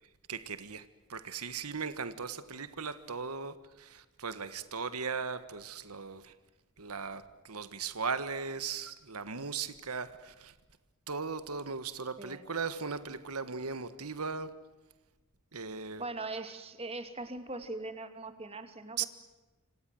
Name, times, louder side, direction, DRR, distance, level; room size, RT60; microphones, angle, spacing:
voice 1, 0.3-6.3 6.8-10.5 11.1-14.5 15.5-16.0 19.0-19.1, right 5 dB, 90° right, 12 dB, 1.6 m, -38 dB
voice 2, 16.0-19.1, right 2 dB, 25° right, 8 dB, 2.6 m, -40 dB
27.5 x 26.5 x 7.8 m, 1.2 s
head